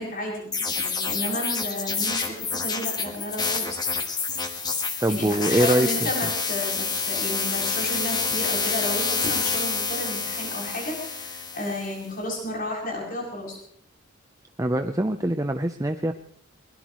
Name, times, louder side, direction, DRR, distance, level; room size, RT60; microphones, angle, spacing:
voice 1, 0.0-3.8 5.1-13.6, left 1 dB, 45° left, -2 dB, 7.9 m, -32 dB
sound 1, 0.5-11.9, left 5 dB, 20° left, 1.5 m, -28 dB
voice 2, 5.0-5.9 14.6-16.1, right 1 dB, 15° right, 6 dB, 0.6 m, -23 dB
22.0 x 20.0 x 3.1 m, 0.65 s
head